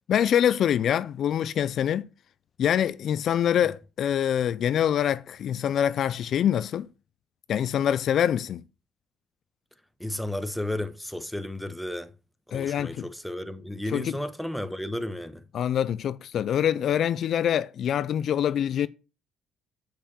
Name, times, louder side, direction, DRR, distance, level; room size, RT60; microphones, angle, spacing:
voice 1, 0.1-2.1 2.6-6.9 7.5-8.6 12.5-13.1 13.9-14.2 15.5-18.9, left 9 dB, 60° left, 0.4 m, -25 dB
voice 2, 10.0-12.1 12.5-15.4, left 1 dB, ahead, 1.0 m, -33 dB
6.6 x 5.7 x 6.9 m
cardioid pair, 85°, 0 cm